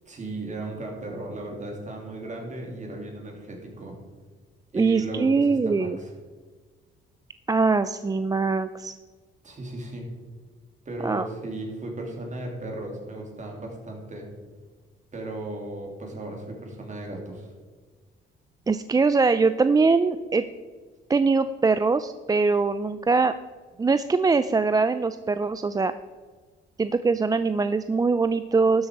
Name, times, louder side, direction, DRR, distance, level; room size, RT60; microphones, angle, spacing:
voice 1, 0.1-4.0 4.7-6.1 9.4-10.1 10.8-14.3 15.1-17.5, right 2 dB, 40° right, 1 dB, 3.1 m, -36 dB
voice 2, 4.7-6.0 7.5-8.9 11.0-11.3 18.7-20.4 21.1-23.3 23.8-25.9 26.8-28.9, right 4 dB, 20° right, 12 dB, 0.4 m, -22 dB
12.5 x 7.2 x 4.7 m, 1.5 s
cardioid pair, 90°, 20 cm